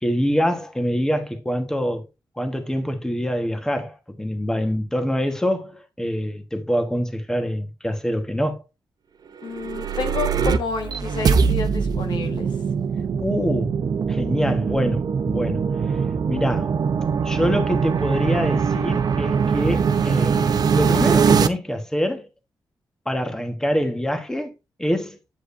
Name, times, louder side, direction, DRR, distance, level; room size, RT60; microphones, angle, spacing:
voice 1, 0.0-2.0 2.4-8.6 13.2-13.8 14.1-15.6 15.9-16.0 16.3-16.7 17.2-22.3 23.0-24.5 24.8-25.2, equal, 5° left, 1.3 m, -25 dB
voice 2, 9.4-12.6, left 4 dB, 80° left, 1.5 m, -30 dB
sound 1, 9.4-21.5, right 6 dB, 55° right, 0.7 m, -22 dB
8.5 x 7.6 x 2.6 m
cardioid pair, 105°, 8 cm